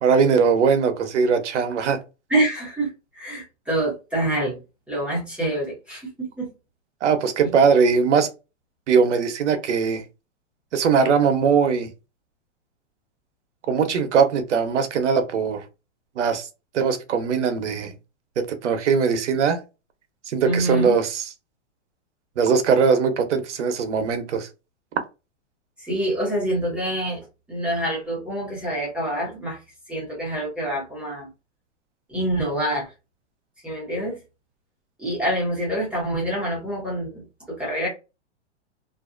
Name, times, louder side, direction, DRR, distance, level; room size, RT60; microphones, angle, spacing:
voice 1, 0.0-2.0 7.0-8.3 8.9-10.0 10.7-11.9 13.7-15.6 16.2-16.5 16.7-17.9 18.4-19.6 20.3-21.2 22.4-24.5, right 6 dB, 80° right, 0.8 m, -20 dB
voice 2, 2.3-4.6 4.9-6.5 7.4-7.5 20.4-21.0 25.8-29.6 29.9-31.3 32.1-32.9 33.6-34.2 35.0-37.9, right 1 dB, 5° right, 0.6 m, -26 dB
2.5 x 2.0 x 2.4 m
hypercardioid pair, 150°, 35 cm